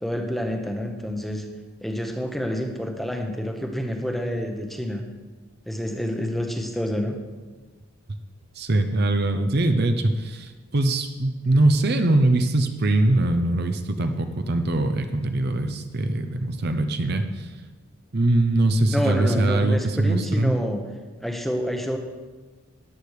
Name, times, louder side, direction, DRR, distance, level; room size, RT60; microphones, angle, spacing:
voice 1, 0.0-1.5 1.8-5.0 5.7-7.2 18.9-20.9 21.2-22.0, equal, ahead, 3 dB, 1.0 m, -28 dB
voice 2, 8.6-17.5 18.1-20.6, right 2 dB, 45° right, 7 dB, 0.7 m, -22 dB
13.5 x 9.7 x 4.9 m, 1.3 s
head